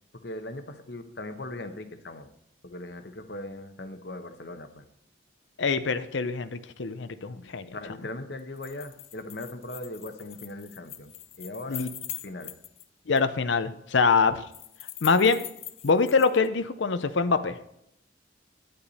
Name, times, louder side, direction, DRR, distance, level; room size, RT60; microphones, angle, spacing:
voice 1, 0.2-2.3 2.6-4.9 7.7-11.9 12.2-12.5, left 2 dB, 60° left, 8 dB, 1.0 m, -39 dB
voice 2, 5.6-7.8 11.7-11.9 13.1-14.4 15.0-15.4 15.8-17.6, left 4 dB, 75° left, 11 dB, 0.6 m, -24 dB
sound 1, 8.4-12.9 13.2-13.3 14.5-16.5, left 12 dB, 30° left, 0.4 m, -42 dB
9.9 x 8.7 x 4.1 m, 0.76 s
head